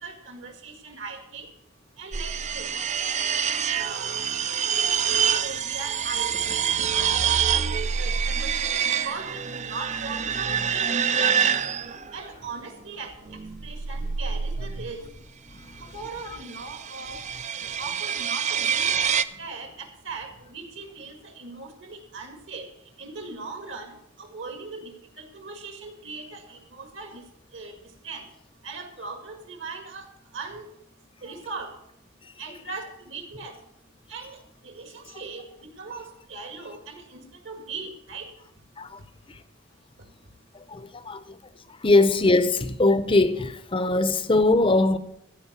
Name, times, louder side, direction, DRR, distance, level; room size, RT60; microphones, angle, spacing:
voice 1, 0.0-1.5 2.0-2.7 3.7-4.2 5.0-11.4 12.1-13.1 13.6-15.0 15.8-22.7 23.0-24.9 25.2-27.2 27.5-27.7 28.0-28.3 28.6-30.1 30.3-30.7 31.2-31.7 32.4-33.6 34.1-35.5 35.8-38.3, right 4 dB, 65° right, 2.1 m, -39 dB
sound 1, 2.1-12.3 13.3-15.1 16.3-19.2, right 7 dB, 35° right, 0.4 m, -26 dB
voice 2, 40.7-41.3 41.8-45.0, left 2 dB, 25° left, 0.7 m, -21 dB
14.5 x 5.3 x 8.1 m
head